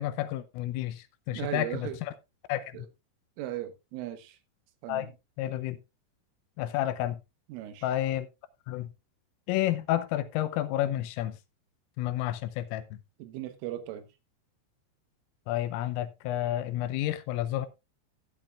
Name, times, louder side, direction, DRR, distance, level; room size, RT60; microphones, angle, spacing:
voice 1, 0.0-2.1 2.5-2.8 4.9-5.1 5.4-5.8 6.6-7.2 7.8-8.3 8.7-8.9 9.5-11.4 12.0-13.0 15.5-17.7, left 13 dB, 80° left, 3.3 m, -30 dB
voice 2, 1.3-2.0 2.7-2.9 3.4-4.4 4.8-5.1 7.5-7.9 13.2-14.1, right 13 dB, 75° right, 3.5 m, -37 dB
13.5 x 10.5 x 2.4 m
omnidirectional pair, 6.0 m